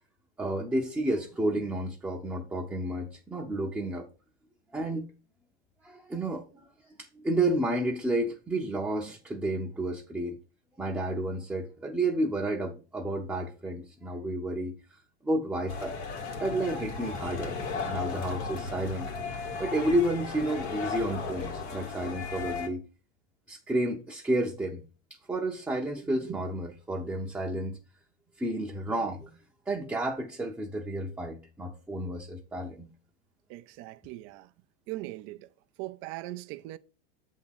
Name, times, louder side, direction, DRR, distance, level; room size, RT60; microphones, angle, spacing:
voice 1, 0.4-4.1 4.7-5.0 5.8-6.4 7.1-10.4 10.8-14.7 15.2-15.9 16.4-17.6 17.8-19.1 19.6-22.8 23.5-24.8 25.3-27.8 28.4-29.3 29.7-32.9, right 1 dB, 5° right, 0.7 m, -31 dB
sound 1, 15.7-22.7, left 4 dB, 80° left, 2.0 m, -35 dB
voice 2, 33.5-34.5 34.9-35.5 35.8-36.8, right 17 dB, 40° right, 0.5 m, -40 dB
7.5 x 3.7 x 5.8 m
supercardioid pair, 135°, 33 cm